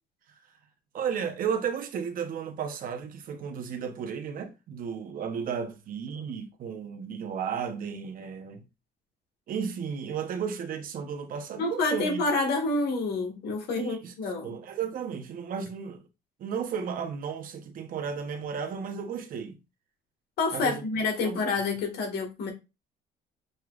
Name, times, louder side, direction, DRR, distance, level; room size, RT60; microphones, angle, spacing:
voice 1, 0.9-8.7 9.5-12.2 13.8-14.1 14.4-16.0 16.4-19.6 20.5-20.8 21.2-21.4, right 7 dB, 55° right, 0.8 m, -34 dB
voice 2, 11.6-14.5 20.4-22.5, left 3 dB, 70° left, 1.6 m, -28 dB
6.5 x 2.9 x 2.4 m
cardioid pair, 110°, 17 cm